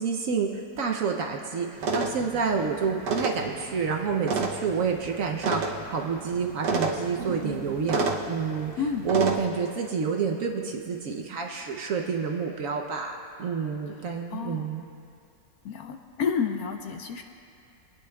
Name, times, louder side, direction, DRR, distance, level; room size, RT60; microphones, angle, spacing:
voice 1, 0.0-8.7 9.0-14.8, right 5 dB, 60° right, 2 dB, 0.9 m, -29 dB
sound 1, 1.8-9.4, right 3 dB, 80° right, 1.5 m, -31 dB
voice 2, 14.3-14.7 15.6-17.2, left 6 dB, 70° left, 5 dB, 1.0 m, -30 dB
26.0 x 9.5 x 2.3 m, 2.5 s
omnidirectional pair, 1.8 m